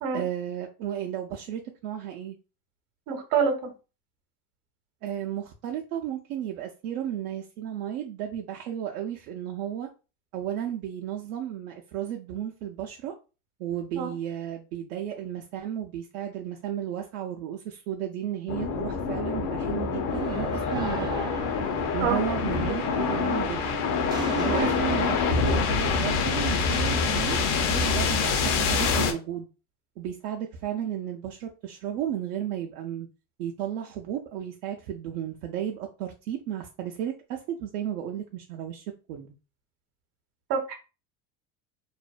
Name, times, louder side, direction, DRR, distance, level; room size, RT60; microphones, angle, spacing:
voice 1, 0.1-2.4 5.0-9.9 10.3-13.1 13.6-21.4 21.9-23.7 24.3-29.5 30.0-33.1 33.4-39.3, right 10 dB, 80° right, 0.5 m, -34 dB
voice 2, 3.1-3.7 13.9-14.1 22.0-22.2 24.5-24.7 40.5-40.8, right 6 dB, 60° right, 0.9 m, -26 dB
sound 1, 18.5-29.1, left 5 dB, 70° left, 0.7 m, -26 dB
sound 2, 20.1-27.5, right 2 dB, 10° right, 0.3 m, -37 dB
2.5 x 2.1 x 2.4 m
supercardioid pair, 100°, 45 cm